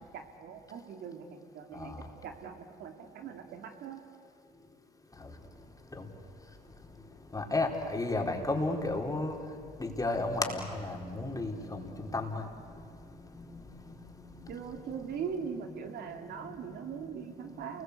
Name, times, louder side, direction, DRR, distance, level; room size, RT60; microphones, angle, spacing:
voice 1, 0.0-4.0 14.5-17.8, right 7 dB, 70° right, 5 dB, 2.4 m, -41 dB
voice 2, 7.3-12.5 13.3-13.6 14.3-14.6 14.9-15.3, left 2 dB, 20° left, 2 dB, 4.3 m, -33 dB
28.5 x 21.0 x 8.3 m, 2.4 s
supercardioid pair, 65°, 18 cm